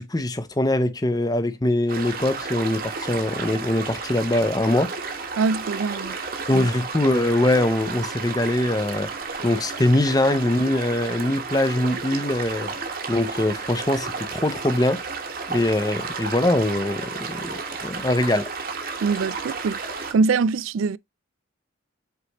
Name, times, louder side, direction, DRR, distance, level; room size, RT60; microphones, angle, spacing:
voice 1, 0.0-4.9 6.5-9.1 9.4-12.7 13.1-15.0 15.5-17.5 17.8-18.5, left 1 dB, 20° left, 0.6 m, -22 dB
sound 1, 1.9-20.1, right 4 dB, 45° right, 1.2 m, -32 dB
voice 2, 5.4-6.2 19.0-19.8 20.1-21.0, right 4 dB, 85° right, 0.4 m, -23 dB
8.1 x 4.1 x 3.0 m
head